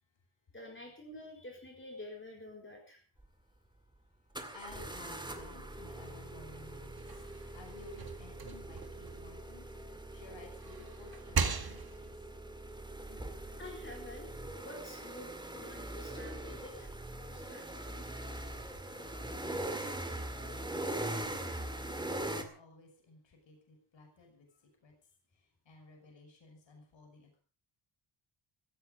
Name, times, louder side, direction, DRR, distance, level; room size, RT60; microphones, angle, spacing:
voice 1, 0.5-3.0 13.6-14.3 14.6-16.9 17.3-18.1, left 1 dB, 25° left, 1 dB, 4.3 m, -49 dB
sound 1, 3.2-3.3 4.3-22.4, right 1 dB, 10° right, 2.1 m, -42 dB
voice 2, 4.5-7.2 7.5-9.7 10.1-12.1 13.1-13.3 18.9-19.9 20.3-24.5 24.8-24.9 25.7-27.4, left 3 dB, 60° left, 3 dB, 5.8 m, -55 dB
sound 2, 6.8-10.0 10.4-12.2, right 5 dB, 45° right, 2.2 m, -38 dB
16.0 x 16.0 x 5.1 m, 0.39 s
wide cardioid pair, 160°, 50 cm